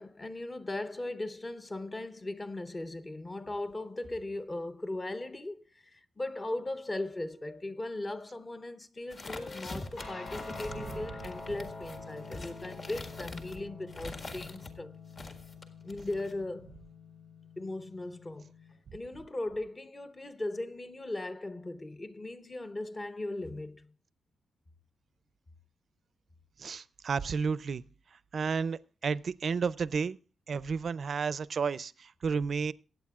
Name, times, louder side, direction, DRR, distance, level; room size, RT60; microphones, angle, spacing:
voice 1, 0.0-14.9 15.8-16.7 17.6-18.5 18.9-23.9, left 2 dB, 25° left, 0.7 m, -38 dB
sound 1, 7.2-9.0 9.4-11.9 12.4-12.7, left 3 dB, 85° left, 3.0 m, -56 dB
sound 2, 9.1-14.7 15.1-16.3, left 2 dB, 45° left, 1.7 m, -44 dB
Guitar, 10.0-18.7, left 4 dB, 65° left, 5.1 m, -47 dB
voice 2, 26.6-27.8 28.3-30.2 30.5-32.7, right 5 dB, 50° right, 0.4 m, -32 dB
22.5 x 9.0 x 2.4 m
wide cardioid pair, 135°, 0 cm